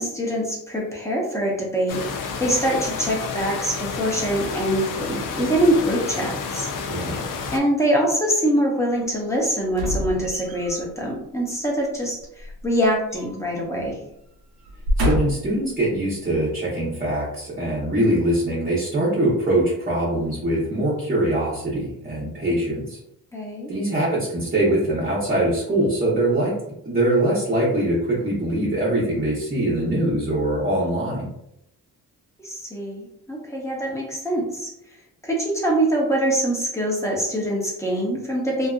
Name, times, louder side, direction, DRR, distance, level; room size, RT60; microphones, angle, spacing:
voice 1, 0.0-2.0 2.4-6.7 7.5-14.0 23.3-23.7 32.4-34.7 35.2-38.7, right 1 dB, 10° left, -3 dB, 0.6 m, -24 dB
sound 1, 1.9-7.6, left 5 dB, 60° left, 0.5 m, -30 dB
voice 2, 6.9-7.2 15.0-23.0 23.7-26.5 26.8-31.3, right 1 dB, 25° right, -7 dB, 0.7 m, -23 dB
sound 2, 9.7-10.9 12.4-13.6 13.9-14.1 14.6-15.6 16.2-16.3, left 1 dB, 70° right, 0.8 m, -26 dB
2.6 x 2.4 x 2.3 m, 0.79 s
cardioid pair, 115°, 37 cm